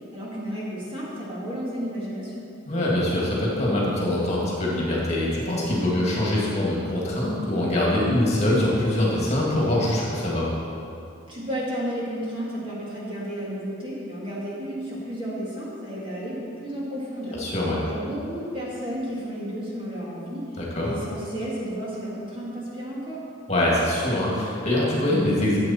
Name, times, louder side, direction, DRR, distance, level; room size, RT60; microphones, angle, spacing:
voice 1, 0.1-2.4 11.3-17.4 17.9-20.5 20.8-23.2, equal, 25° right, -6 dB, 2.1 m, -32 dB
voice 2, 2.7-10.5 17.3-17.8 20.6-20.9 23.5-25.6, left 1 dB, 35° left, -5 dB, 2.3 m, -23 dB
13.0 x 8.1 x 4.5 m, 2.6 s
head